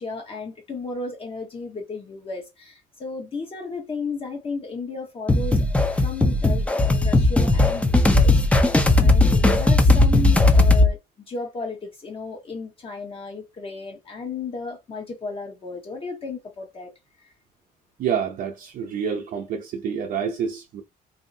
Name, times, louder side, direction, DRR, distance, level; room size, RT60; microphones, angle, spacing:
voice 1, 0.0-5.7 5.9-16.9 17.2-17.3, left 4 dB, 35° left, 1.0 m, -34 dB
sound 1, 5.3-10.9, left 2 dB, 5° left, 0.5 m, -17 dB
voice 2, 18.0-20.8, right 7 dB, 60° right, 0.6 m, -28 dB
3.0 x 2.7 x 2.6 m
cardioid pair, 110°, 17 cm